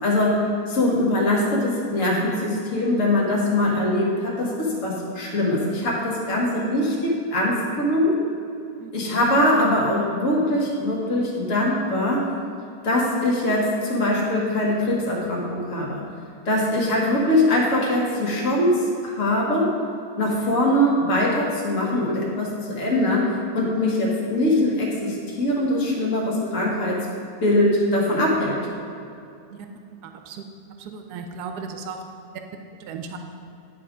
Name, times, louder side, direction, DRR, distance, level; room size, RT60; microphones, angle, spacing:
voice 1, 0.0-8.2 8.9-12.3 12.8-16.0 16.5-19.7 20.2-27.1 27.4-28.6, left 1 dB, 50° left, -3 dB, 1.6 m, -22 dB
voice 2, 30.0-30.4 30.8-32.0 32.9-33.2, right 5 dB, 85° right, 5 dB, 1.1 m, -36 dB
10.0 x 3.7 x 4.9 m, 2.6 s
omnidirectional pair, 1.7 m